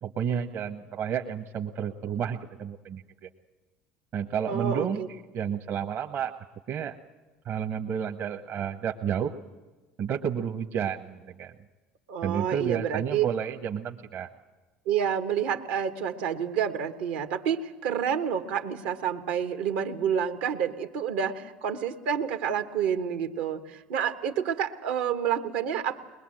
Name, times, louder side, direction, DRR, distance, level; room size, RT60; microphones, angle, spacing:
voice 1, 0.0-3.3 4.1-5.0 5.3-6.3 6.7-6.9 7.4-9.3 10.0-11.5 12.2-14.3, right 8 dB, 55° right, 3 dB, 1.2 m, -31 dB
voice 2, 4.5-5.1 12.1-13.3 14.9-26.0, right 8 dB, 80° right, 7 dB, 1.4 m, -29 dB
21.5 x 21.0 x 7.8 m, 1.2 s
supercardioid pair, 80°, 5 cm